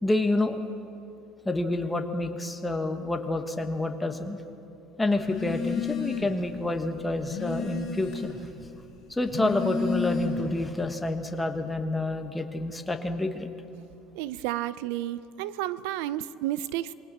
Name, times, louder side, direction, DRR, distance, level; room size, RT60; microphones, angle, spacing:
voice 1, 0.0-0.6 1.4-4.4 5.0-8.3 9.1-13.5, left 2 dB, 5° left, 5 dB, 1.3 m, -28 dB
Telephone, 5.2-6.5 6.8-8.5 9.1-10.6, left 5 dB, 30° left, 6.0 m, -32 dB
voice 2, 14.2-16.9, right 14 dB, 80° right, 16 dB, 0.7 m, -31 dB
27.0 x 22.0 x 7.4 m, 2.7 s
cardioid pair, 170°, 0 cm